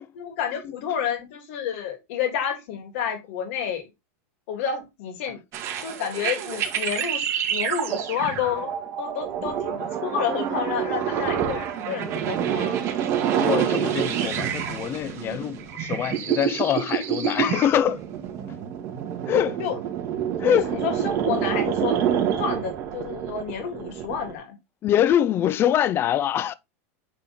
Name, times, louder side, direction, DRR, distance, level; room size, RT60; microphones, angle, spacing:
voice 1, 0.1-3.9 4.5-5.4 5.8-8.7 9.0-12.8 19.6-19.8 20.5-22.0 22.4-24.6, left 8 dB, 65° left, 3.1 m, -30 dB
sound 1, 5.5-24.3, right 9 dB, 40° right, 2.0 m, -27 dB
voice 2, 13.3-18.0 19.3-19.6 20.4-20.7 24.8-26.5, left 10 dB, 30° left, 0.6 m, -24 dB
8.8 x 4.4 x 3.6 m
supercardioid pair, 145°, 8 cm